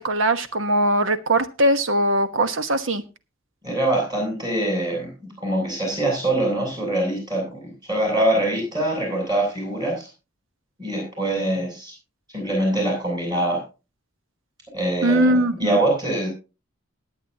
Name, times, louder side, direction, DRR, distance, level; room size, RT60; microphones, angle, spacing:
voice 1, 0.0-3.0 15.0-15.8, right 1 dB, 70° right, 1.2 m, -20 dB
voice 2, 3.6-10.1 10.8-11.9 12.3-13.6 14.7-16.3, right 1 dB, 20° right, 8.0 m, -24 dB
20.0 x 8.8 x 2.9 m
head